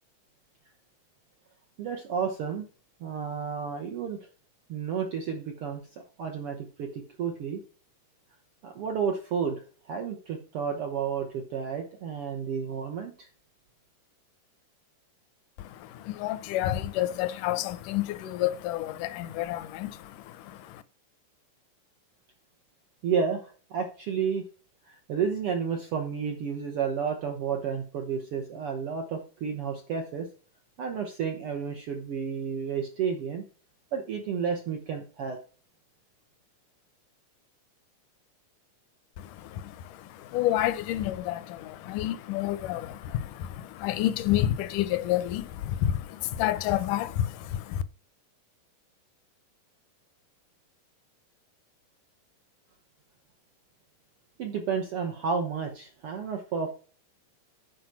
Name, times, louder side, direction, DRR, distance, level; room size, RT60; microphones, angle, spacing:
voice 1, 1.8-2.7 3.0-4.2 4.7-5.8 6.2-7.6 8.6-9.6 9.9-13.1 23.0-24.4 24.9-30.3 30.8-33.4 33.9-35.4 54.4-56.7, right 6 dB, 75° right, 1.3 m, -31 dB
voice 2, 15.6-20.8 39.2-47.8, left 13 dB, 80° left, 2.0 m, -30 dB
7.9 x 5.1 x 5.8 m
omnidirectional pair, 3.9 m